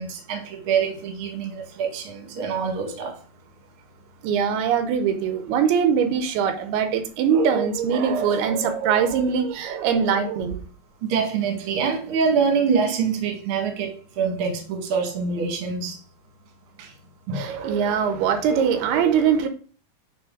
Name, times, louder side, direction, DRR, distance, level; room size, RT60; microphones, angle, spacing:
voice 1, 0.0-3.2 11.0-16.0 16.8-16.9 17.3-17.4, right 6 dB, 55° right, 1.7 m, -25 dB
voice 2, 4.2-10.6 17.3-19.5, right 7 dB, 90° right, 2.7 m, -22 dB
8.7 x 3.5 x 3.7 m
omnidirectional pair, 4.6 m